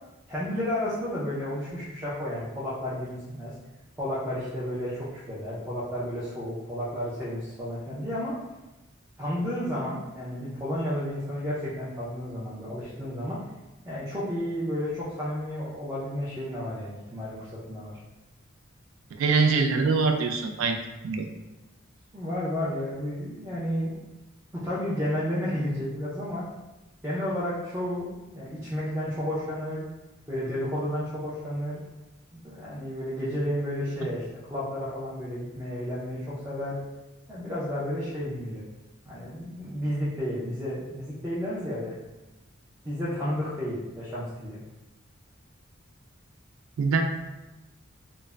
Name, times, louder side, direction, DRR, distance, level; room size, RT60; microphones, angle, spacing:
voice 1, 0.3-3.5 4.0-8.4 9.2-13.4 13.9-17.9 22.1-23.9 24.5-26.4 27.0-29.9 30.3-31.8 32.3-34.2 34.5-36.8 37.3-38.6 39.0-42.0 42.8-44.6, equal, 15° right, -9 dB, 0.5 m, -32 dB
voice 2, 19.2-20.8 21.0-21.3 46.8-47.0, right 4 dB, 75° right, 4 dB, 0.3 m, -23 dB
2.4 x 2.0 x 3.2 m, 1.0 s
head